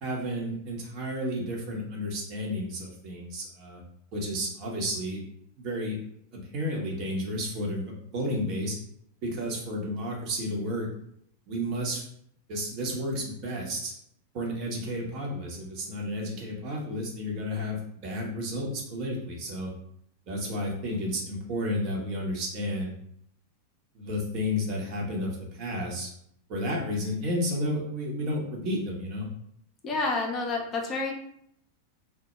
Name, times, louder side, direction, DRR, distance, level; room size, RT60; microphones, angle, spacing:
voice 1, 0.0-3.8 4.1-5.2 5.6-6.0 6.3-8.8 9.2-10.9 11.5-12.0 12.5-13.9 14.3-19.7 20.3-22.9 23.9-26.1 26.5-29.3, equal, 40° right, -2 dB, 0.7 m, -32 dB
voice 2, 29.8-31.1, left 3 dB, 25° left, 1 dB, 0.4 m, -29 dB
2.1 x 2.0 x 3.0 m, 0.70 s
figure-of-eight pair, 90°, 0 cm